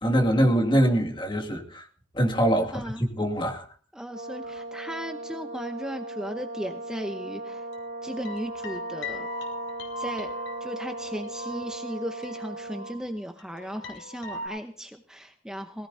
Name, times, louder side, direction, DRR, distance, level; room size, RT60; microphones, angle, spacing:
voice 1, 0.0-1.8 2.1-3.6, equal, 25° left, 2.3 m, -23 dB
voice 2, 2.7-3.0 3.9-7.7 8.0-9.3 10.0-10.3 10.6-15.9, equal, 5° right, 0.9 m, -36 dB
Brass instrument, 4.1-13.0, right 2 dB, 55° right, 3.1 m, -38 dB
sound 1, 7.5-13.1 13.4-14.5, left 2 dB, 80° left, 5.1 m, -40 dB
20.0 x 17.5 x 2.8 m
head